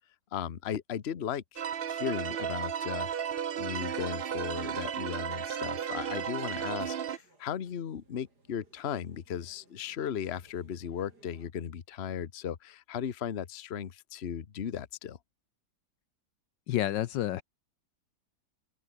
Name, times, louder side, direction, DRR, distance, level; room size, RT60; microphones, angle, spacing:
voice 1, 0.3-15.2, left 8 dB, 40° left, 1.1 m, -37 dB
sound 1, 1.6-7.2, right 8 dB, 80° right, 0.5 m, -34 dB
sound 2, 5.7-11.5, right 2 dB, 55° right, 6.0 m, -63 dB
voice 2, 16.7-17.4, left 13 dB, 70° left, 1.3 m, -29 dB
open air
omnidirectional pair, 2.1 m